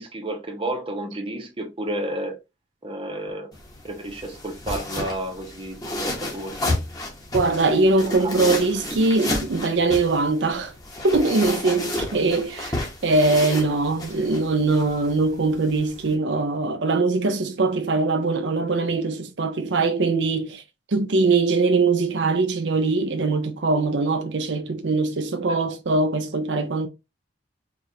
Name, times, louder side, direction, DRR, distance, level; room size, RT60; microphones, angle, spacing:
voice 1, 0.0-2.4 2.8-3.5 3.8-6.7 8.2-8.3 25.5-25.6, right 1 dB, 30° right, 0.8 m, -31 dB
sound 1, 3.5-16.1, left 1 dB, 20° left, 1.1 m, -31 dB
voice 2, 7.3-10.7 11.0-20.6 20.9-26.9, right 3 dB, 75° right, 0.5 m, -22 dB
4.7 x 2.5 x 2.8 m
head